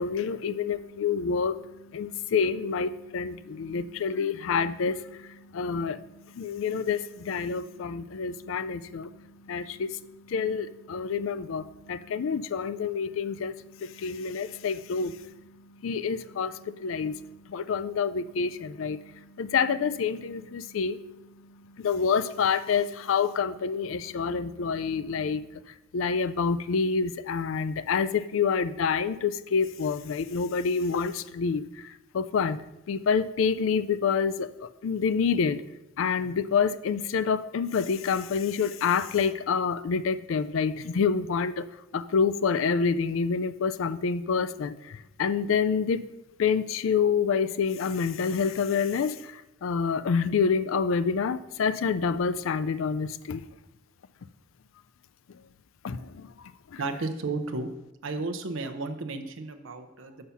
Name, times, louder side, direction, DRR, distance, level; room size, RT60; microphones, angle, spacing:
voice 1, 0.0-25.4 25.9-32.6 32.9-35.6 36.0-41.7 41.9-46.0 46.4-53.4 55.8-56.3 56.7-56.8, left 5 dB, 80° left, 14 dB, 0.4 m, -28 dB
voice 2, 56.8-57.7 58.0-60.2, right 3 dB, 75° right, 7 dB, 0.6 m, -33 dB
6.5 x 5.6 x 5.7 m, 0.95 s
head